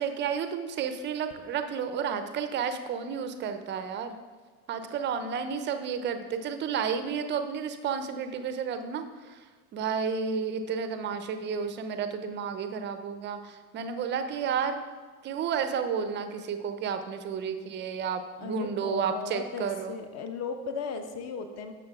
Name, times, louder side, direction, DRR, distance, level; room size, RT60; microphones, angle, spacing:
voice 1, 0.0-4.2 4.7-9.4 9.7-14.9 15.2-20.0, right 6 dB, 25° right, 8 dB, 0.5 m, -31 dB
voice 2, 18.4-21.7, left 5 dB, 35° left, 7 dB, 0.9 m, -36 dB
12.5 x 6.4 x 2.4 m, 1.4 s
hypercardioid pair, 85°, 45 cm